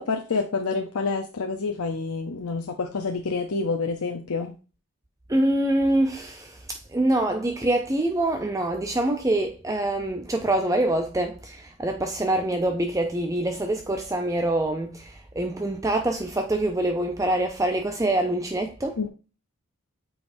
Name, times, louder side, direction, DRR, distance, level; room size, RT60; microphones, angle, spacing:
voice 1, 0.0-4.5 19.0-19.1, left 4 dB, 85° left, 0.7 m, -28 dB
voice 2, 5.3-19.0, right 1 dB, 15° right, 0.5 m, -25 dB
8.7 x 4.8 x 2.6 m
head